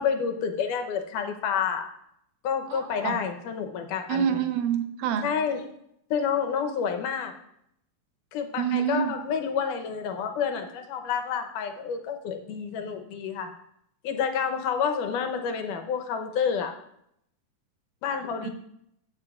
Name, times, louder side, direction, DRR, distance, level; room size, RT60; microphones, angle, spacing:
voice 1, 0.0-1.9 2.4-4.4 5.2-5.7 6.1-7.3 8.3-13.5 14.0-16.7 18.0-18.5, left 7 dB, 85° left, 5 dB, 2.5 m, -29 dB
voice 2, 2.7-3.2 4.1-5.3 8.6-9.1 18.4-18.5, right 8 dB, 85° right, 7 dB, 2.4 m, -27 dB
15.5 x 7.3 x 2.4 m, 0.74 s
omnidirectional pair, 3.6 m